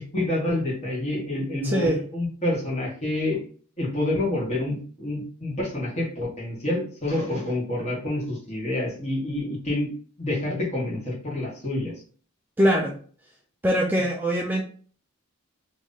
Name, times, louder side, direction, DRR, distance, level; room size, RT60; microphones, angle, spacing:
voice 1, 0.1-3.4 3.8-9.9 10.2-11.9, left 1 dB, 30° left, -4 dB, 1.4 m, -28 dB
voice 2, 1.6-2.0 12.6-13.0 13.6-14.6, equal, 10° right, -1 dB, 0.4 m, -22 dB
3.1 x 2.6 x 3.7 m, 0.43 s
head